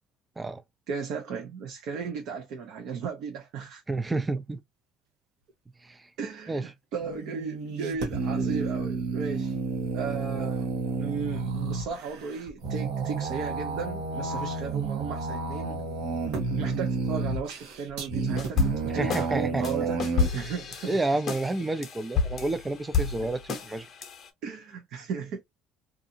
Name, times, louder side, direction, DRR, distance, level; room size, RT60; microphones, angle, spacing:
voice 1, 0.9-3.8 6.2-9.7 9.9-10.7 11.0-15.8 16.6-20.0 20.3-21.0 24.4-25.4, right 6 dB, 65° right, 0.7 m, -35 dB
voice 2, 3.9-4.6 5.8-6.1 6.5-6.7 18.9-19.7 20.9-23.9, right 2 dB, 10° right, 0.3 m, -30 dB
sound 1, 7.0-20.3, right 4 dB, 85° right, 1.0 m, -31 dB
sound 2, 18.2-19.3 19.6-24.3, left 5 dB, 35° left, 0.7 m, -31 dB
2.7 x 2.4 x 2.5 m
cardioid pair, 145°, 0 cm